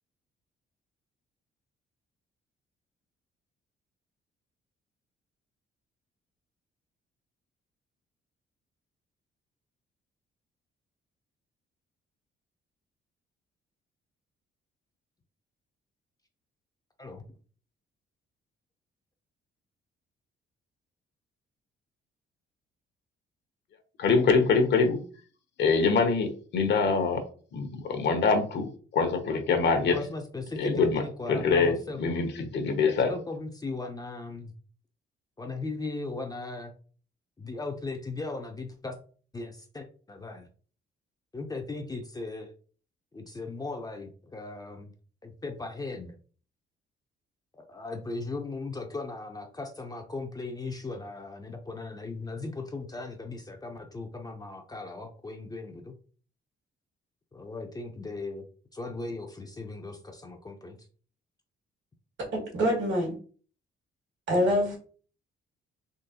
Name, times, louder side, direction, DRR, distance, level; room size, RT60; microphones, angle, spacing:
voice 1, 24.0-25.0 25.6-27.2 27.5-30.0 30.6-31.0 31.3-33.1, left 4 dB, 60° left, 7 dB, 0.8 m, -24 dB
voice 2, 29.9-32.2 33.1-34.5 35.4-36.7 37.4-39.0 39.3-40.5 41.3-42.5 43.1-44.9 45.2-46.1 47.5-55.9 57.3-58.5 58.7-60.8, left 3 dB, 20° left, 4 dB, 0.5 m, -37 dB
voice 3, 62.3-63.2 64.3-64.8, equal, 70° right, -2 dB, 1.9 m, -25 dB
3.7 x 2.9 x 2.8 m, 0.42 s
cardioid pair, 90°, 20 cm